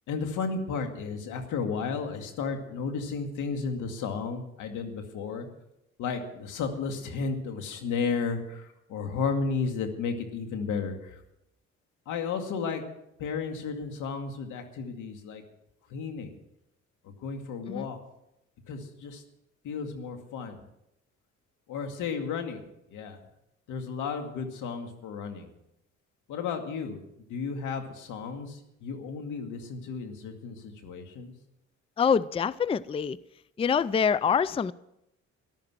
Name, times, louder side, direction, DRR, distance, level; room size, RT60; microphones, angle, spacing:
voice 1, 0.1-5.5 6.0-11.1 12.1-12.8 13.2-15.4 15.9-16.4 17.2-18.0 18.7-19.2 19.6-20.6 21.7-22.6 22.9-23.2 23.7-25.5 26.3-27.0 27.3-31.3, left 5 dB, 90° left, 5 dB, 2.2 m, -33 dB
voice 2, 32.0-33.2 33.6-34.7, left 6 dB, 20° left, 19 dB, 0.4 m, -25 dB
14.0 x 12.0 x 6.1 m, 0.82 s
cardioid pair, 90°, 30 cm